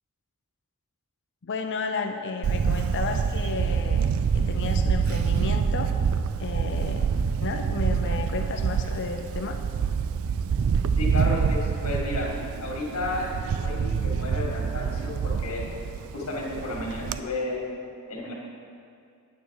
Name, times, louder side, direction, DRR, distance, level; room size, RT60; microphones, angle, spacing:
voice 1, 1.4-5.9 6.4-7.1 7.4-9.6, left 4 dB, 55° left, 5 dB, 0.6 m, -32 dB
Camera, 2.4-17.2, right 6 dB, 65° right, 0.3 m, -26 dB
voice 2, 11.0-12.3 12.6-15.6 16.1-17.6 18.1-18.3, left 2 dB, 75° left, -3 dB, 2.1 m, -32 dB
9.1 x 8.6 x 4.7 m, 2.4 s
head